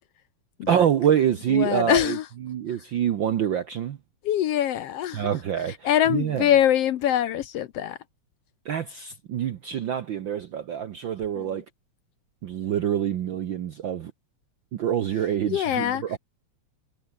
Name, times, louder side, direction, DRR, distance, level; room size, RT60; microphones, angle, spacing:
voice 1, 0.7-2.2 2.4-4.0 5.1-6.4 8.6-11.6 12.4-14.1 14.7-16.2, right 9 dB, 65° right, 1.2 m, -26 dB
voice 2, 1.5-2.3 4.2-5.3 5.7-8.0 11.4-11.6 15.5-16.2, left 11 dB, 65° left, 1.7 m, -24 dB
omnidirectional pair, 3.3 m